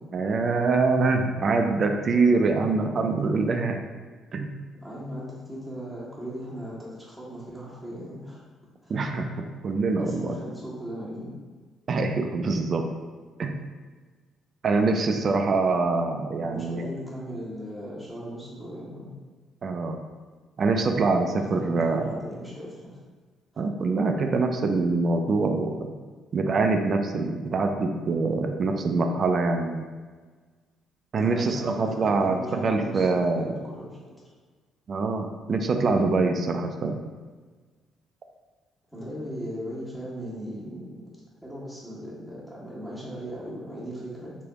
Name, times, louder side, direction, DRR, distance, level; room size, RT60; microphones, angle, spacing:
voice 1, 0.1-3.8 4.3-4.5 8.9-10.4 11.9-12.8 13.4-13.5 14.6-16.9 19.6-20.0 20.6-22.1 23.6-25.9 26.3-29.8 31.1-33.5 34.9-37.0, right 3 dB, 45° right, 5 dB, 0.4 m, -24 dB
voice 2, 4.8-8.4 8.8-8.9 10.0-11.3 16.4-19.1 21.5-23.0 31.2-34.1 38.9-41.0 41.4-44.3, equal, ahead, -7 dB, 1.4 m, -38 dB
3.2 x 2.9 x 3.6 m, 1.4 s
figure-of-eight pair, 45°, 0 cm